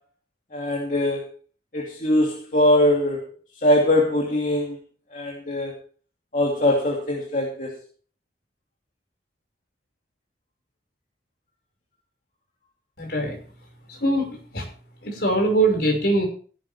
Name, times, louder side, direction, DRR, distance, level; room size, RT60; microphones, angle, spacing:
voice 1, 0.5-1.2 1.7-3.2 3.6-4.8 5.1-5.7 6.3-7.7, left 1 dB, 45° left, -1 dB, 2.6 m, -21 dB
voice 2, 13.0-13.4 13.9-14.7 15.0-16.2, right 2 dB, 60° left, 1 dB, 5.7 m, -22 dB
16.0 x 11.5 x 3.5 m, 0.42 s
head